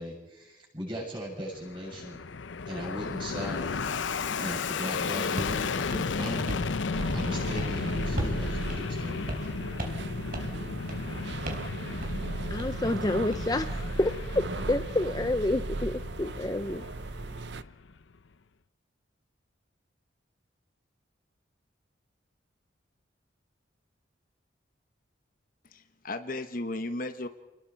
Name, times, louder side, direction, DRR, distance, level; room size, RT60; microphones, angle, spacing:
voice 1, 0.0-2.2 2.7-4.0 4.4-6.6 7.1-9.4, equal, 25° right, -2 dB, 7.3 m, -38 dB
Fixed-wing aircraft airplane, 1.4-18.0, left 4 dB, 80° left, 0.7 m, -34 dB
sound 1, 5.4-5.6 5.9-6.7 7.0-7.3 7.6-7.8 8.2-8.4 8.7-8.8 9.3-9.5 9.8-10.1 10.3-10.6 10.9-11.1 11.5-11.7 12.0-12.2 12.6-13.5, right 1 dB, 50° right, 3.8 m, -37 dB
sound 2, 6.9-17.6, right 3 dB, 65° right, 0.7 m, -37 dB
voice 2, 12.5-16.8, left 1 dB, 20° left, 9 dB, 0.6 m, -29 dB
voice 3, 25.6-27.3, left 2 dB, 45° left, 8 dB, 1.1 m, -35 dB
29.0 x 20.5 x 4.6 m, 1.1 s
head